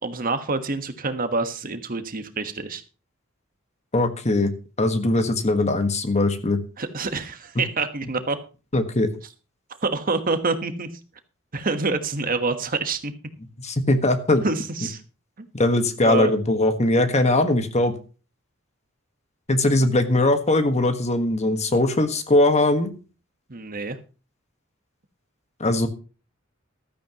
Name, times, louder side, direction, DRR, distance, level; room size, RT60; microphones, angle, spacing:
voice 1, 0.0-2.8 6.8-8.4 9.8-10.9 11.5-13.1 14.4-15.0 16.0-16.3 23.5-24.0, right 3 dB, 45° right, 9 dB, 1.3 m, -26 dB
voice 2, 3.9-4.5 4.8-6.6 8.7-9.1 13.6-14.4 15.5-17.9 19.5-22.9 25.6-25.9, left 2 dB, 35° left, 8 dB, 1.5 m, -20 dB
15.0 x 13.0 x 3.0 m, 0.34 s
head